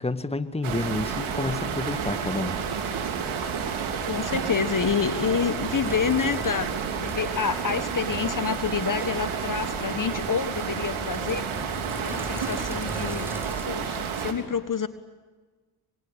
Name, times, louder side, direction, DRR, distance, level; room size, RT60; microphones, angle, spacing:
voice 1, 0.0-2.6, left 2 dB, 10° left, 10 dB, 1.8 m, -29 dB
sound 1, 0.6-14.3, right 6 dB, 75° right, 3.5 m, -30 dB
sound 2, 2.6-8.5, right 5 dB, 50° right, 4.1 m, -42 dB
voice 2, 4.0-11.5 12.0-13.3 13.7-14.9, left 6 dB, 40° left, 12 dB, 1.6 m, -28 dB
Sink (filling or washing), 4.8-13.7, equal, 5° right, 4.2 m, -41 dB
26.0 x 23.0 x 8.9 m, 1.3 s
supercardioid pair, 55°, 49 cm